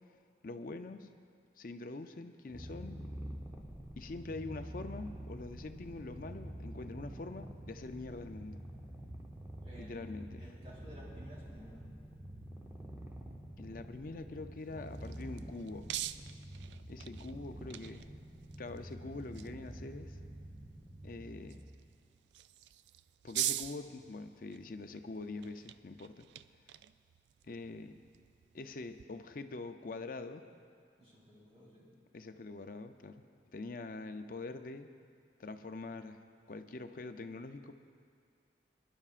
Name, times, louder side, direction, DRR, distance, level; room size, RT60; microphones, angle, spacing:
voice 1, 0.4-1.1 1.6-3.0 4.0-8.6 9.8-10.5 13.6-15.9 16.9-18.1 18.6-20.2 21.0-21.6 23.2-26.3 27.4-28.0 28.5-30.4 32.1-33.2 33.5-34.9 35.4-36.2 36.5-37.7, left 3 dB, 50° left, 8 dB, 0.5 m, -44 dB
Purr, 2.5-21.8, right 1 dB, 15° right, 0.8 m, -47 dB
voice 2, 9.6-10.1 10.4-11.8 31.0-31.9, equal, 35° right, -6 dB, 3.9 m, -54 dB
sound 1, 14.6-29.0, right 13 dB, 75° right, 0.3 m, -45 dB
25.5 x 11.0 x 2.5 m, 2.2 s
head